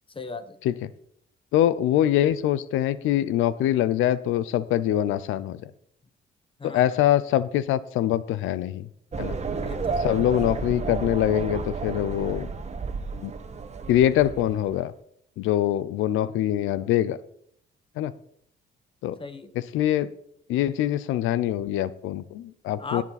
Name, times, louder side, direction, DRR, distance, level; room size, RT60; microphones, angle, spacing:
voice 1, 0.1-0.6 6.6-7.0 9.5-10.2 19.2-19.5 22.8-23.0, left 3 dB, 25° left, 10 dB, 1.2 m, -37 dB
voice 2, 1.5-5.7 6.6-8.9 9.2-9.4 10.0-12.5 13.2-13.3 13.9-14.9 15.4-17.2 18.0-18.1 19.0-19.2 19.7-20.1 20.5-23.0, left 12 dB, 90° left, 17 dB, 0.6 m, -24 dB
sound 1, 9.1-14.8, right 4 dB, 35° right, 1.3 m, -32 dB
16.5 x 7.4 x 4.1 m, 0.69 s
cardioid pair, 90°, 20 cm